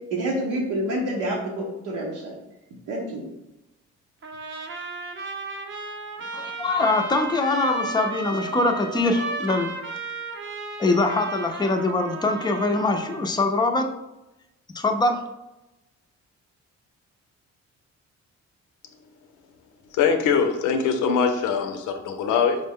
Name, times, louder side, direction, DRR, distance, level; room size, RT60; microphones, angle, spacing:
voice 1, 0.1-2.4 2.9-3.2, right 1 dB, 85° right, -3 dB, 0.9 m, -28 dB
Trumpet, 4.2-13.3, right 3 dB, 40° right, 0.6 m, -34 dB
voice 2, 6.3-9.7 10.8-13.9 14.7-15.2, left 2 dB, 15° left, 4 dB, 0.5 m, -23 dB
voice 3, 19.9-22.6, left 6 dB, 90° left, 6 dB, 0.6 m, -22 dB
5.0 x 2.1 x 3.6 m, 0.95 s
cardioid pair, 90°, 30 cm